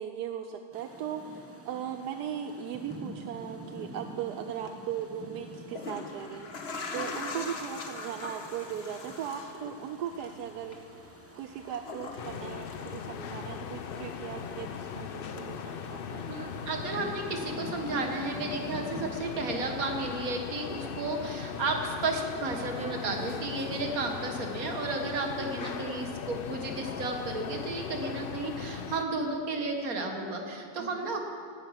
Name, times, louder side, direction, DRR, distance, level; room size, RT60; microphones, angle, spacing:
voice 1, 0.0-10.8 11.4-16.3 30.8-31.1, right 9 dB, 85° right, 7 dB, 1.2 m, -38 dB
Rain, 0.7-19.1, right 1 dB, 10° right, 0.9 m, -47 dB
sound 1, 4.5-4.7 5.5-13.6 13.9-14.9 15.4-15.5, left 3 dB, 45° left, 1.3 m, -42 dB
sound 2, 12.2-29.0, left 7 dB, 80° left, 0.5 m, -39 dB
voice 2, 16.3-31.2, right 2 dB, 60° right, 3 dB, 2.0 m, -33 dB
17.5 x 11.0 x 5.9 m, 2.3 s
omnidirectional pair, 1.7 m